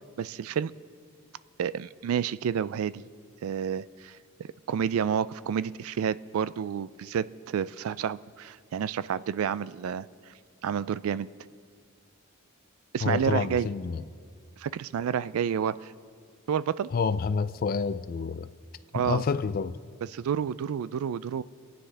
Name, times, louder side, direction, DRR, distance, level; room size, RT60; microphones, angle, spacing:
voice 1, 0.2-0.7 1.6-3.0 3.4-4.2 4.7-10.1 10.6-11.3 12.9-13.7 14.6-15.9 16.5-16.9 18.9-19.2 20.1-21.4, right 8 dB, 75° right, 0.3 m, -29 dB
voice 2, 13.0-14.0 16.9-18.5 18.9-19.8, left 5 dB, 40° left, 0.3 m, -28 dB
27.0 x 9.6 x 3.3 m
head